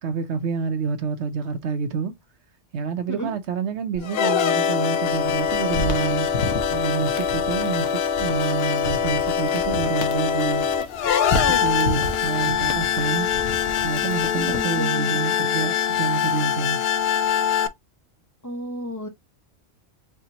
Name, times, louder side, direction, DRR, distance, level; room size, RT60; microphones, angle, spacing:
voice 1, 0.0-2.1 2.7-6.3 6.7-10.7 11.3-13.3 13.8-16.8, right 5 dB, 75° right, 1.1 m, -28 dB
sound 1, 4.0-17.7, left 8 dB, 65° left, 0.7 m, -23 dB
sound 2, 5.0-14.8, left 2 dB, 85° left, 1.2 m, -33 dB
voice 2, 14.3-15.2 18.4-19.1, left 1 dB, 20° left, 0.7 m, -32 dB
5.0 x 2.9 x 2.8 m
omnidirectional pair, 1.2 m